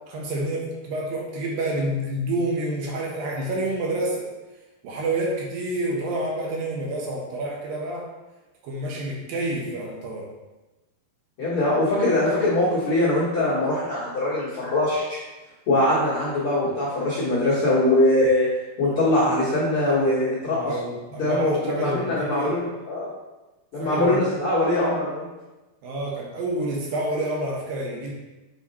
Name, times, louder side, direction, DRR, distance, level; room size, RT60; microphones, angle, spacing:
voice 1, 0.1-4.3 4.8-8.1 8.6-10.3 18.8-19.3 20.4-22.6 23.8-24.2 25.8-28.1, right 1 dB, 70° right, -2 dB, 2.6 m, -28 dB
voice 2, 11.4-15.2 15.7-18.5 18.8-20.8 21.2-23.1 23.7-25.3, left 1 dB, 50° left, -9 dB, 1.7 m, -22 dB
7.4 x 4.3 x 4.2 m, 1.1 s
omnidirectional pair, 4.6 m